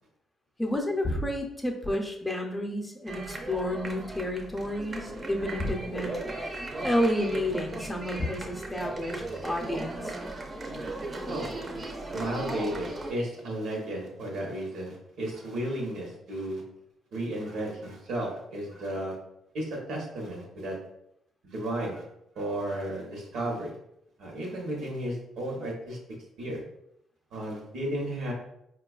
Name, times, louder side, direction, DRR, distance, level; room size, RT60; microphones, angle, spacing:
voice 1, 0.6-6.2 6.8-10.2, left 1 dB, 10° left, 1 dB, 0.6 m, -30 dB
sound 1, 3.1-13.1, right 2 dB, 35° right, 0.6 m, -37 dB
voice 2, 12.1-16.6 17.1-19.1 19.5-20.8 21.4-22.0 22.3-23.8 24.2-26.0 26.4-26.6 27.3-28.3, right 1 dB, 80° right, -1 dB, 1.0 m, -33 dB
4.4 x 2.3 x 2.3 m, 0.78 s
cardioid pair, 90°, 0 cm